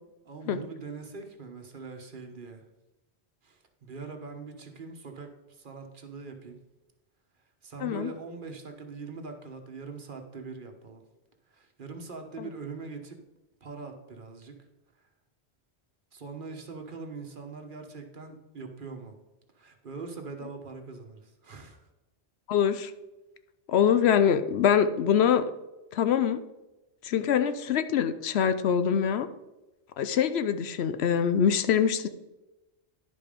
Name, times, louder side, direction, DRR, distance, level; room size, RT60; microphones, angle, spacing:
voice 1, 0.2-2.6 3.4-6.6 7.6-11.0 11.5-13.2 13.6-14.6 15.0-15.1 16.1-19.1 19.5-21.8, right 4 dB, 50° right, 4 dB, 1.2 m, -42 dB
voice 2, 7.8-8.1 12.4-12.5 22.5-22.9 23.7-25.4 25.9-26.4 27.0-29.3 30.0-32.1, left 8 dB, 70° left, 11 dB, 0.8 m, -24 dB
10.5 x 5.2 x 5.1 m, 1.0 s
omnidirectional pair, 1.1 m